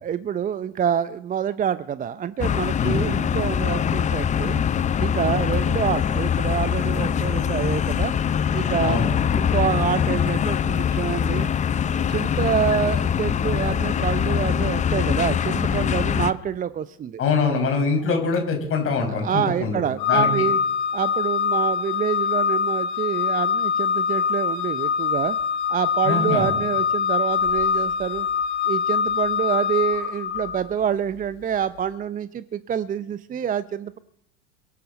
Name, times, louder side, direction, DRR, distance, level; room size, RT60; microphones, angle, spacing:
voice 1, 0.0-4.6 5.0-8.1 8.5-9.0 9.3-11.5 12.1-17.2 19.1-20.6 20.9-25.4 25.7-28.3 28.7-34.0, right 8 dB, 25° right, 14 dB, 0.7 m, -27 dB
sound 1, 2.4-16.3, left 8 dB, 20° left, 0.6 m, -23 dB
voice 2, 17.2-19.8 20.1-20.5 26.0-26.6, left 4 dB, 40° left, 3 dB, 5.7 m, -23 dB
Organ, 20.0-30.7, left 7 dB, 60° left, 1.6 m, -24 dB
23.5 x 12.5 x 4.2 m, 0.77 s
hypercardioid pair, 80°, 34 cm